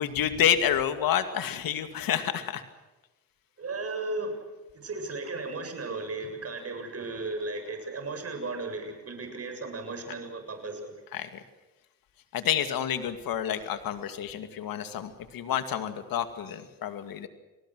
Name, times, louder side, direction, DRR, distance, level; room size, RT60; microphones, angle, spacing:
voice 1, 0.0-2.6 11.1-11.4 12.3-17.3, left 9 dB, 80° left, 9 dB, 2.4 m, -29 dB
voice 2, 3.6-11.0, right 3 dB, 45° right, 6 dB, 7.8 m, -35 dB
29.5 x 20.0 x 6.4 m, 1.1 s
cardioid pair, 90°, 34 cm